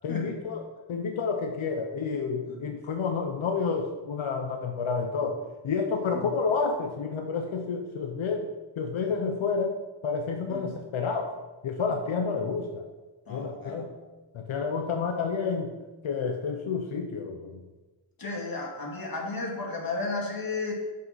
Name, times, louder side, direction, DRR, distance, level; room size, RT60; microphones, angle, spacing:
voice 1, 0.0-0.6 0.9-5.4 5.6-8.5 8.8-9.8 10.0-11.3 11.6-12.8 13.3-13.9 14.3-15.8 16.0-17.6, left 5 dB, 90° left, 4 dB, 0.9 m, -29 dB
voice 2, 13.3-13.9 18.2-20.7, left 3 dB, 45° left, -1 dB, 2.2 m, -33 dB
8.0 x 5.9 x 5.7 m, 1.2 s
wide cardioid pair, 110°, 47 cm